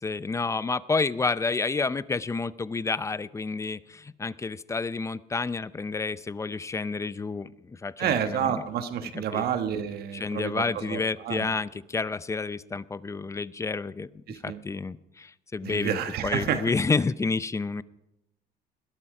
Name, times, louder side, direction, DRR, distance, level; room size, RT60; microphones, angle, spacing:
voice 1, 0.0-8.7 9.1-9.4 10.1-16.0 16.2-17.8, left 4 dB, 15° left, 17 dB, 0.5 m, -30 dB
voice 2, 8.0-11.5 14.3-14.6 15.6-16.7, right 8 dB, 70° right, 9 dB, 1.4 m, -29 dB
20.5 x 12.5 x 4.9 m, 0.90 s
cardioid pair, 110°, 17 cm